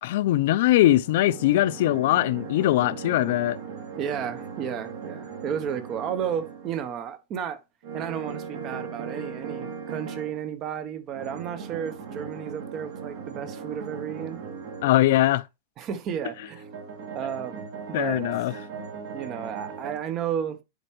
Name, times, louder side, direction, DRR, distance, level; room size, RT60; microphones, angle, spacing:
voice 1, 0.0-3.6 14.8-15.4 17.9-18.5, left 14 dB, 60° left, 0.6 m, -21 dB
sound 1, 0.9-7.0 7.8-10.4 11.1-14.9 16.2-20.0, right 6 dB, 60° right, 2.4 m, -38 dB
voice 2, 4.0-7.6 7.9-14.4 15.8-16.7 17.1-18.2 19.1-20.6, right 8 dB, 30° right, 1.0 m, -33 dB
11.0 x 4.4 x 3.1 m
supercardioid pair, 150°, 0 cm